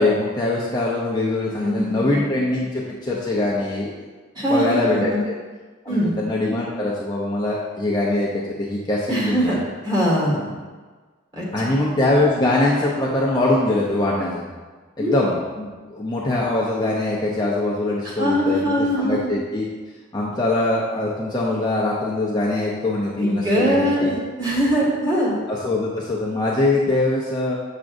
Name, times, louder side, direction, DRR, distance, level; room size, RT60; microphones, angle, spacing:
voice 1, 0.0-3.9 4.5-5.3 5.8-9.6 11.5-14.4 15.0-19.6 20.1-24.2 25.5-27.6, left 2 dB, 20° left, -5 dB, 0.6 m, -22 dB
voice 2, 1.6-2.0 4.3-5.2 5.9-6.1 9.1-9.6 9.8-10.5 11.3-11.7 15.0-15.1 18.0-19.2 23.2-25.3, equal, 20° right, -5 dB, 1.7 m, -22 dB
7.4 x 6.0 x 2.6 m, 1.4 s
head